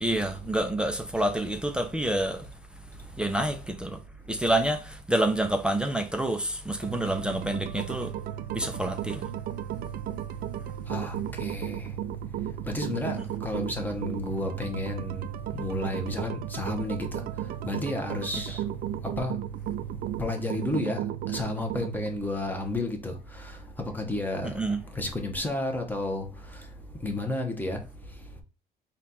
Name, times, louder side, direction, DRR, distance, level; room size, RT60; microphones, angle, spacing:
voice 1, 0.0-2.4 3.2-4.0 4.3-8.1 8.5-9.2 13.2-13.3 24.4-24.8, right 1 dB, 5° right, 0.5 m, -28 dB
sound 1, 6.8-22.2, right 11 dB, 60° right, 0.4 m, -35 dB
voice 2, 10.9-11.8 12.7-15.3 15.6-17.1 17.6-18.6 19.2-19.4 20.2-21.0 21.3-23.1 23.8-24.5 25.0-26.2 27.0-27.8, left 2 dB, 10° left, 1.0 m, -31 dB
4.2 x 2.5 x 4.1 m
cardioid pair, 110°, 17 cm